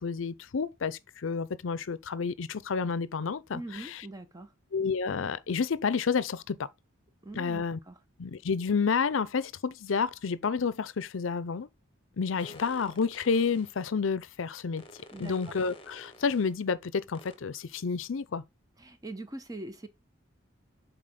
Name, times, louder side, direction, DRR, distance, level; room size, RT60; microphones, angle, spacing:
voice 1, 0.0-4.1 4.7-6.7 7.4-7.8 8.2-11.7 12.2-14.8 15.2-18.4, left 5 dB, 80° left, 0.5 m, -30 dB
voice 2, 3.5-4.5 7.2-7.9 15.1-15.5 18.8-19.9, right 2 dB, 20° right, 0.9 m, -42 dB
sound 1, 12.4-13.8 14.8-16.6 17.1-17.4, left 2 dB, 30° left, 1.1 m, -51 dB
7.6 x 4.4 x 3.8 m
head